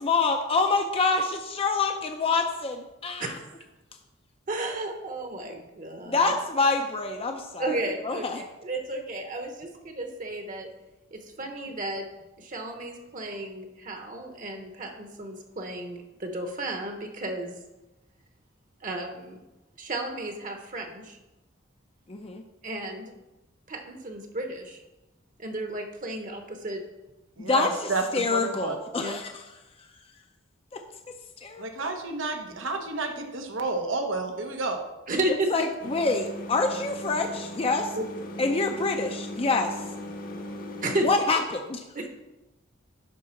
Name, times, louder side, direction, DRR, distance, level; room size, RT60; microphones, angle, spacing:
voice 1, 0.0-3.3 6.1-7.8 8.0-8.4 22.1-22.4 27.4-29.3 30.7-30.8 31.4-31.9 35.5-37.9 38.4-39.8 41.0-41.8, left 3 dB, 30° left, 4 dB, 0.6 m, -26 dB
voice 2, 4.5-6.3 7.6-10.7 11.1-12.1 12.4-17.6 18.8-19.4 19.8-21.2 22.6-23.1 23.7-24.8 25.4-26.8 29.0-29.2 35.1-35.5 37.9-38.0 40.8-41.1 41.9-42.1, right 2 dB, 45° right, 4 dB, 1.1 m, -33 dB
voice 3, 27.4-28.0 28.3-28.8 31.6-34.8, right 3 dB, 80° right, 4 dB, 1.1 m, -30 dB
sound 1, 35.8-41.2, left 1 dB, 50° left, 1.0 m, -38 dB
11.0 x 3.9 x 5.8 m, 1.0 s
head